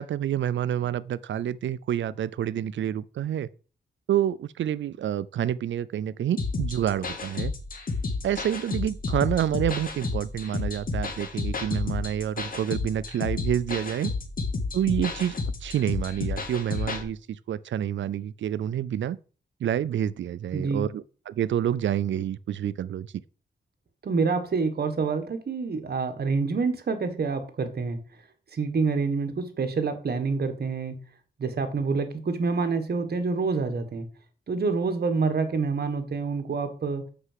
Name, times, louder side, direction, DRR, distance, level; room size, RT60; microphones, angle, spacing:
voice 1, 0.0-3.5 4.1-7.5 8.2-14.1 14.7-15.4 15.6-19.2 19.6-23.1, right 10 dB, 90° right, 0.4 m, -28 dB
sound 1, 6.4-17.0, left 3 dB, 45° left, 1.9 m, -31 dB
voice 2, 20.5-20.9 24.0-28.0 28.5-30.9 31.4-34.1 34.5-37.0, right 4 dB, 55° right, 1.6 m, -27 dB
6.6 x 6.0 x 7.4 m
wide cardioid pair, 155°, 19 cm